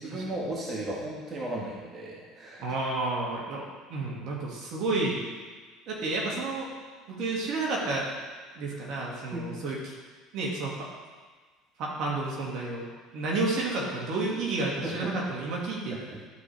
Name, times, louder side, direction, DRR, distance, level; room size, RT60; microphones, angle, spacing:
voice 1, 0.0-2.6 9.3-9.6 14.8-15.1 15.9-16.2, right 1 dB, 35° right, -4 dB, 1.8 m, -35 dB
voice 2, 2.6-5.2 5.9-6.7 7.1-8.1 8.5-9.9 10.3-10.9 11.8-12.9 13.1-16.0, right 2 dB, 60° right, -3 dB, 2.2 m, -31 dB
12.0 x 4.8 x 3.5 m, 1.4 s
supercardioid pair, 95°, 0 cm